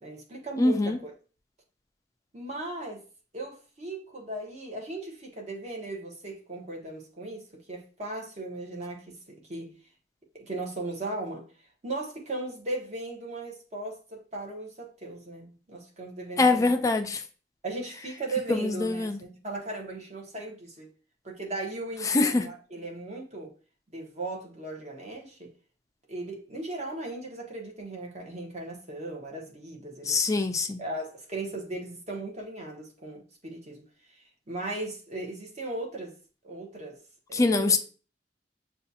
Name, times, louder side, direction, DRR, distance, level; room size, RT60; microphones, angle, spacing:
voice 1, 0.0-1.1 2.3-3.0 3.3-9.7 10.3-11.4 11.8-16.7 17.6-20.9 21.2-23.5 23.9-25.5 26.1-30.5 30.8-33.8 34.5-36.1 36.4-37.0 37.3-37.8, right 2 dB, 40° right, 1.0 m, -37 dB
voice 2, 0.6-1.0 16.4-17.2 18.5-19.2 22.1-22.5 30.1-30.8 37.3-37.8, left 3 dB, 20° left, 0.3 m, -24 dB
6.6 x 2.4 x 2.7 m
head